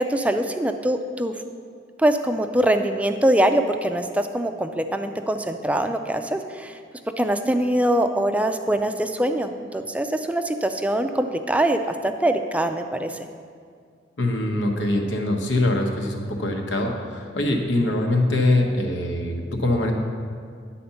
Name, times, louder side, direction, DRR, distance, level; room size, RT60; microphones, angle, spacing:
voice 1, 0.0-1.3 2.0-6.8 7.2-13.1, right 1 dB, 5° right, 7 dB, 0.3 m, -23 dB
voice 2, 14.2-19.9, left 1 dB, 85° left, 2 dB, 1.1 m, -23 dB
10.0 x 4.3 x 6.9 m, 2.1 s
head